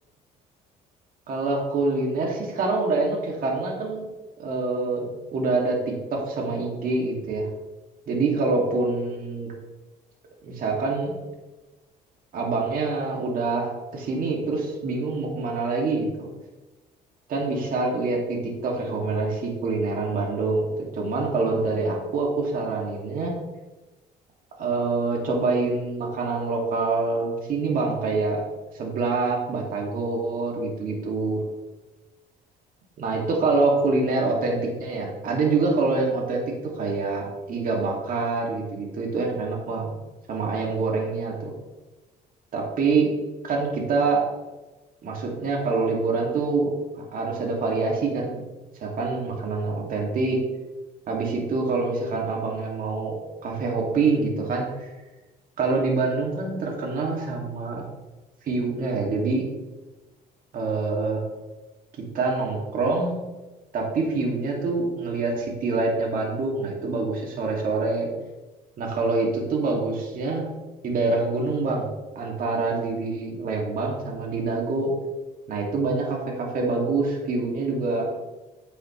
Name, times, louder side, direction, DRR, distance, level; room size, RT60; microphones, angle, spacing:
voice 1, 1.3-4.1 4.4-7.5 8.1-9.5 10.4-11.2 12.3-16.3 17.3-20.7 20.9-23.3 24.6-28.4 28.7-31.4 33.0-40.0 40.3-41.5 42.5-43.1 43.4-44.2 45.0-46.7 47.0-48.5 48.8-50.4 51.1-54.9 55.6-57.8 58.4-59.5 60.5-61.2 62.1-63.2 63.7-68.1 68.8-70.4 70.8-71.9 72.2-74.9 75.5-78.1, right 3 dB, 55° right, -1 dB, 2.4 m, -25 dB
9.8 x 8.5 x 3.2 m, 1.1 s
cardioid pair, 110°, 17 cm